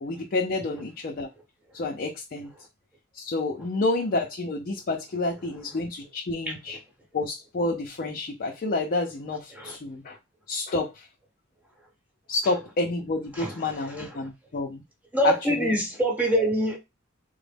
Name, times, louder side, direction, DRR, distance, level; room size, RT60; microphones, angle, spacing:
voice 1, 0.0-1.3 1.7-2.5 3.1-6.8 7.1-10.2 10.5-11.1 12.3-14.8 15.2-15.7, left 2 dB, 45° left, 0.5 m, -29 dB
voice 2, 13.3-14.3 15.1-16.8, equal, 10° right, 1.1 m, -26 dB
3.8 x 2.0 x 3.3 m
head